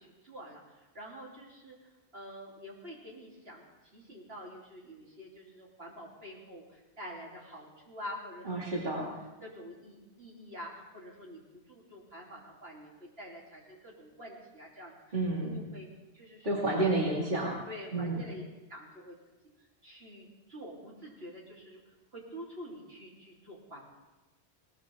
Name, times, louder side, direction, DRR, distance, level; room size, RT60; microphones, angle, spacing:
voice 1, 0.0-9.0 9.4-15.9 16.1-16.6 17.4-18.4 18.7-19.2 19.8-21.8 22.1-23.8, equal, 70° right, -4 dB, 3.8 m, -47 dB
voice 2, 8.5-9.1 15.1-15.6 16.4-17.5 17.9-18.2, right 2 dB, 45° right, -4 dB, 2.6 m, -30 dB
20.0 x 18.5 x 3.7 m, 1.1 s
omnidirectional pair, 1.1 m